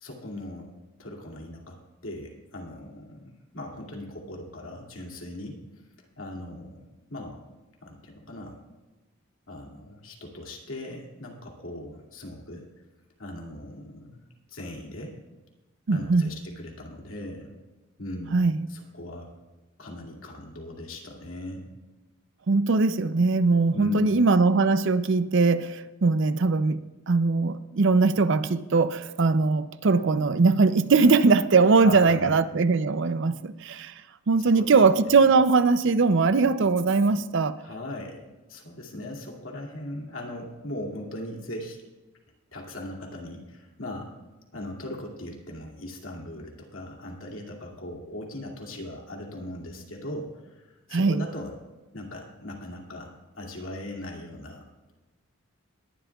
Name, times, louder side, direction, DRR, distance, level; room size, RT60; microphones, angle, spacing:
voice 1, 0.0-0.7 1.0-1.8 2.0-5.6 6.2-6.8 7.1-7.4 7.8-8.6 9.5-12.7 13.2-14.2 14.5-15.2 15.9-17.5 18.0-19.3 19.8-21.6 23.7-24.2 31.8-32.4 34.5-34.7 35.0-35.1 37.6-38.2 38.5-41.8 42.5-44.1 44.5-51.5 51.9-54.6, left 1 dB, 75° left, 2.4 m, -39 dB
voice 2, 15.9-16.3 18.3-18.7 22.5-26.8 27.1-33.9 34.3-37.6 50.9-51.2, right 4 dB, 60° right, 0.5 m, -21 dB
20.0 x 11.5 x 2.4 m
head